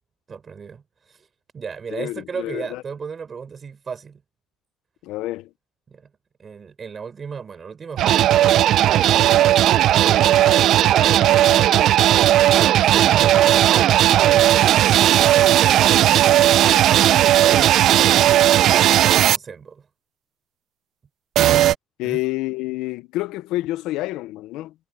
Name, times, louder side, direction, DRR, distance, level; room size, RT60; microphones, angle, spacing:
voice 1, 0.3-1.3 1.5-4.2 5.9-6.1 6.4-11.7 12.6-13.9 15.1-16.3 17.4-18.6 19.3-19.9 22.0-22.2, right 6 dB, 35° right, 6.0 m, -36 dB
voice 2, 1.9-2.8 5.0-5.5 22.0-24.7, left 18 dB, 80° left, 0.7 m, -28 dB
sound 1, 8.0-19.4 21.4-21.7, right 12 dB, 65° right, 0.7 m, -15 dB
cardioid pair, 100°, 0 cm